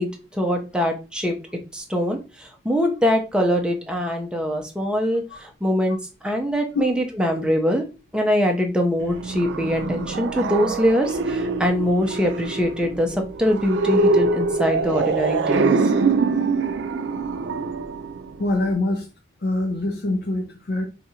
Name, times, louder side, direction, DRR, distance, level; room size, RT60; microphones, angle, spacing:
voice 1, 0.0-1.4 1.7-6.0 6.2-7.8 8.1-15.9, equal, 5° right, 2 dB, 0.6 m, -23 dB
sound 1, 9.0-18.7, right 3 dB, 75° right, 0.4 m, -24 dB
voice 2, 18.4-19.1 19.4-20.8, left 2 dB, 60° left, 2 dB, 0.6 m, -24 dB
2.8 x 2.4 x 4.2 m, 0.30 s
head